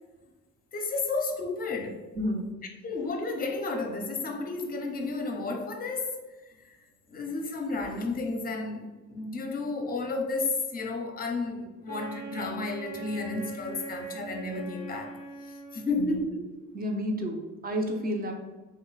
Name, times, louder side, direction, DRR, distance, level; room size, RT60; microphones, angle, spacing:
voice 1, 0.7-2.0 2.8-6.2 6.6-6.8 7.1-16.4, left 3 dB, 30° left, 3 dB, 0.6 m, -32 dB
voice 2, 2.1-2.5 16.0-16.2 16.7-18.3, equal, 30° right, 2 dB, 0.6 m, -30 dB
Wind instrument woodwind instrument, 11.9-16.2, right 4 dB, 80° right, 0.8 m, -41 dB
3.0 x 2.1 x 3.9 m, 1.2 s
cardioid pair, 90°, 30 cm